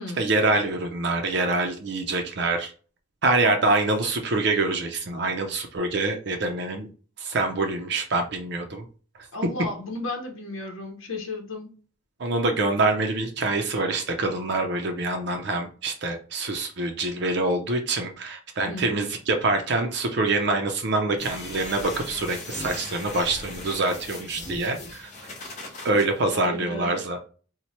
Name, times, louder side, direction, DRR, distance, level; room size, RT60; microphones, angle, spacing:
voice 1, 0.2-2.7 3.2-6.9 7.2-8.9 12.2-25.1 25.8-27.2, right 2 dB, 55° right, 4 dB, 0.5 m, -25 dB
voice 2, 9.3-11.7 18.7-18.9 26.3-27.0, left 2 dB, 90° left, 2 dB, 0.8 m, -34 dB
sound 1, 21.2-26.0, left 2 dB, 40° left, 0.8 m, -38 dB
2.9 x 2.1 x 4.2 m, 0.39 s
head